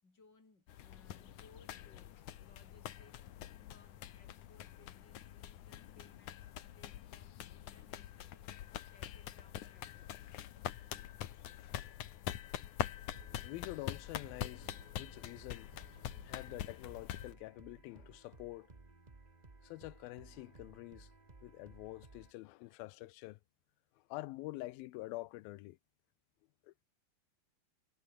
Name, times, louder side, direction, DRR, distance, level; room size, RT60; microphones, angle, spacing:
voice 1, 0.0-3.3 3.7-10.2, left 3 dB, 25° left, 6.9 m, -66 dB
sound 1, 0.7-17.3, left 12 dB, 65° left, 2.5 m, -45 dB
sound 2, 13.1-22.3, right 3 dB, 70° right, 0.4 m, -59 dB
voice 2, 13.4-15.7 16.2-18.7 19.6-21.1 21.4-23.4 24.1-25.8 26.6-26.8, left 19 dB, 90° left, 2.5 m, -47 dB
omnidirectional pair, 4.2 m